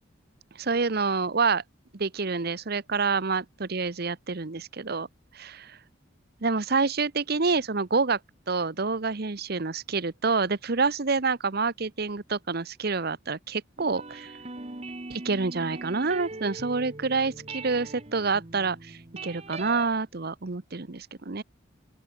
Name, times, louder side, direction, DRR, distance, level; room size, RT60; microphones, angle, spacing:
voice 1, 0.6-1.6 1.9-5.1 5.3-5.8 6.4-8.2 8.5-14.3 15.1-21.4, right 4 dB, 50° right, 0.9 m, -27 dB
sound 1, 13.8-19.9, right 2 dB, 30° right, 1.6 m, -41 dB
open air
head